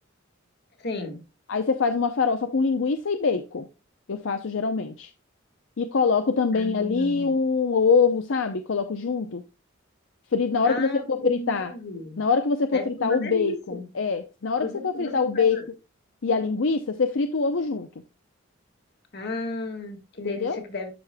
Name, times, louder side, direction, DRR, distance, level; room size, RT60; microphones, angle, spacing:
voice 1, 0.8-1.2 6.5-7.4 10.6-12.2 12.7-13.9 14.6-15.6 19.1-20.9, left 2 dB, 55° left, 1.9 m, -33 dB
voice 2, 1.5-3.7 4.1-5.1 5.8-9.4 10.3-11.7 12.2-15.6 16.2-17.9 20.2-20.6, left 5 dB, 75° left, 0.6 m, -24 dB
12.0 x 5.0 x 2.2 m
head